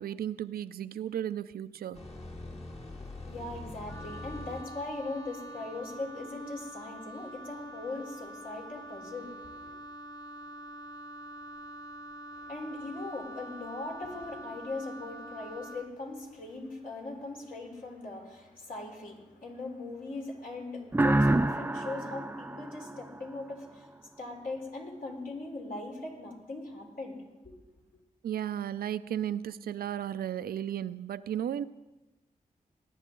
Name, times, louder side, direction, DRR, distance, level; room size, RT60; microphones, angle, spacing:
voice 1, 0.0-2.0 28.2-31.6, right 10 dB, 90° right, 0.4 m, -34 dB
sound 1, 1.9-8.2 8.4-8.7, left 2 dB, 45° left, 2.1 m, -46 dB
voice 2, 2.8-9.7 12.3-23.9 24.2-27.2 27.5-27.6, left 2 dB, 70° left, 3.7 m, -40 dB
Wind instrument woodwind instrument, 3.9-15.9, right 1 dB, 25° left, 1.1 m, -45 dB
sound 2, 20.9-23.6, right 2 dB, 15° right, 0.5 m, -28 dB
19.5 x 10.0 x 3.8 m
cardioid pair, 50°, 15 cm